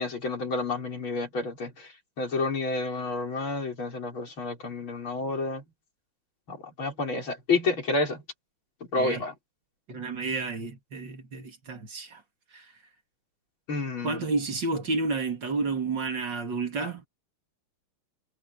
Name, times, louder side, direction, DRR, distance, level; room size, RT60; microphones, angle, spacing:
voice 1, 0.0-1.9 2.2-5.6 6.5-8.2 8.9-9.3 13.7-14.2, left 3 dB, 70° left, 6.0 m, -29 dB
voice 2, 9.9-12.2 12.5-12.6 14.0-17.0, right 3 dB, 60° right, 3.2 m, -31 dB
omnidirectional pair, 2.3 m